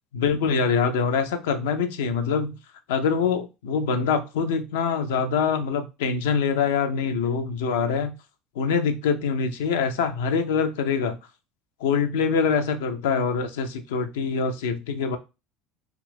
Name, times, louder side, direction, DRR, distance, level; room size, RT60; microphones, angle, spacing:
voice 1, 0.1-2.6 2.9-8.1 8.6-11.2 11.8-15.2, left 6 dB, 80° left, 7 dB, 0.4 m, -24 dB
2.6 x 2.4 x 3.3 m, 0.28 s
hypercardioid pair, 85°, 0 cm